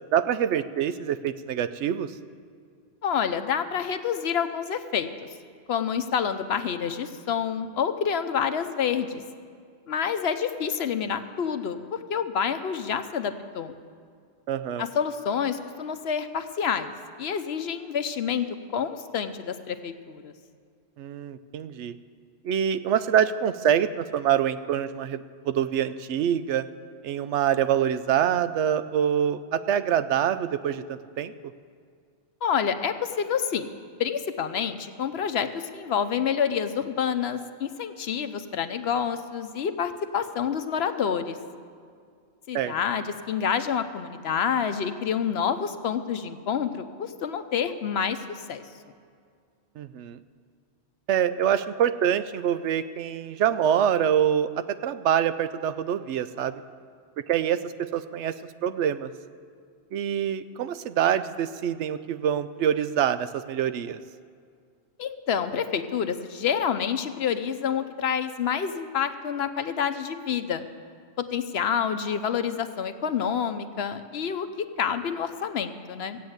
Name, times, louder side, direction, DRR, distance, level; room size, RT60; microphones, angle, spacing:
voice 1, 0.1-2.1 14.5-14.9 21.0-21.9 22.4-26.7 27.0-31.3 42.5-42.7 49.8-50.2 51.1-56.6 57.3-58.3 58.6-59.1 59.9-64.0, right 9 dB, 80° right, 12 dB, 0.9 m, -25 dB
voice 2, 3.0-5.1 5.7-9.2 9.9-13.7 14.8-16.9 17.2-18.5 18.7-20.3 32.4-33.7 34.0-41.4 42.5-48.2 48.5-48.6 65.0-70.6 71.2-76.2, left 7 dB, 65° left, 10 dB, 0.9 m, -28 dB
15.5 x 8.6 x 7.9 m, 2.2 s
omnidirectional pair, 1.2 m